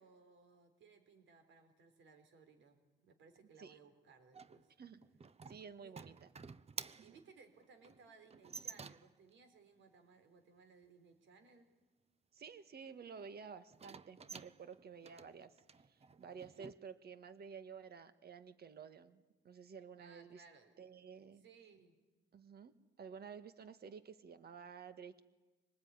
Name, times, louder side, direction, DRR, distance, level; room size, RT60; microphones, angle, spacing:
voice 1, 0.0-4.7 5.8-6.0 7.0-11.8 20.0-20.8 21.4-22.0, right 5 dB, 75° right, 7 dB, 4.2 m, -63 dB
sound 1, 4.3-9.3 13.7-16.7, right 5 dB, 30° right, 0.8 m, -52 dB
voice 2, 5.5-6.3 7.0-7.2 12.3-15.6 15.9-20.4 20.8-21.4 22.3-22.7 23.0-25.2, right 6 dB, 55° right, 11 dB, 1.7 m, -52 dB
25.0 x 19.5 x 9.8 m, 1.2 s
cardioid pair, 90°, 20 cm